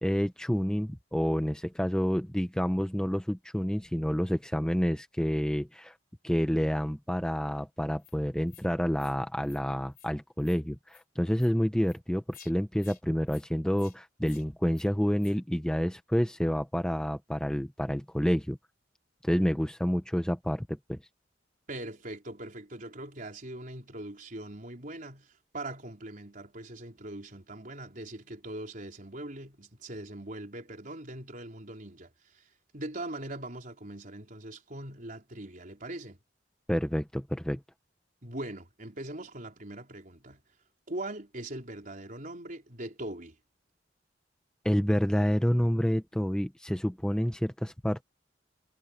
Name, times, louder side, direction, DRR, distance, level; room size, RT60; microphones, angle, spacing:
voice 1, 0.0-5.9 6.2-18.6 19.2-21.0 36.7-37.6 44.6-48.0, equal, 5° left, 0.8 m, -29 dB
sound 1, 8.0-8.1 8.5-8.7 9.0-9.2 9.4-9.6 9.9-10.1 10.4-10.6 10.9-11.0 11.4-11.5 11.8-12.0 12.3-12.5 12.8-13.0 13.3-13.4 13.8-14.0 14.2-14.4 14.7-14.9 15.2-15.4, left 10 dB, 50° left, 4.7 m, -54 dB
voice 2, 21.7-36.2 38.2-40.4 40.9-43.4, right 1 dB, 45° right, 4.3 m, -41 dB
head